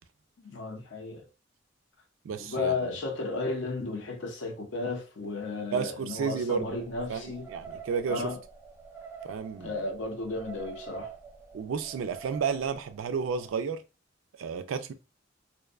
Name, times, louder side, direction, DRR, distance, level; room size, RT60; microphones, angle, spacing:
voice 1, 0.4-1.3 2.4-7.5 8.1-8.4 9.6-11.1, left 3 dB, 65° left, 0.5 m, -34 dB
voice 2, 2.2-2.7 5.7-6.8 7.1-8.3 9.2-9.7 11.5-13.8 14.4-14.9, right 6 dB, 90° right, 0.3 m, -32 dB
sound 1, 6.6-13.5, right 6 dB, 10° right, 0.4 m, -47 dB
2.5 x 2.1 x 2.3 m
head